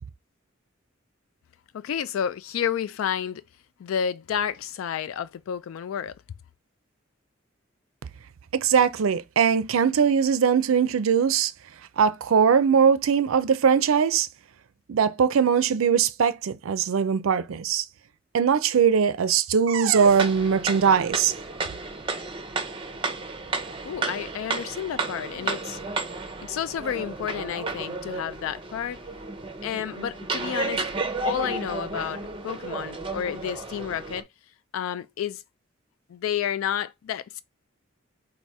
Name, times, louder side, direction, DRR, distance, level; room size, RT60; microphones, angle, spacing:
voice 1, 1.7-3.4 3.8-6.1 23.9-25.8 26.4-29.0 29.6-30.9 31.2-34.3 34.7-35.4 36.1-37.4, left 8 dB, 85° left, 0.3 m, -30 dB
voice 2, 8.5-11.5 12.0-14.3 14.9-17.8 18.3-21.3, right 7 dB, 90° right, 0.4 m, -21 dB
sound 1, 19.9-34.2, right 3 dB, 25° right, 0.6 m, -32 dB
4.1 x 2.6 x 4.6 m
head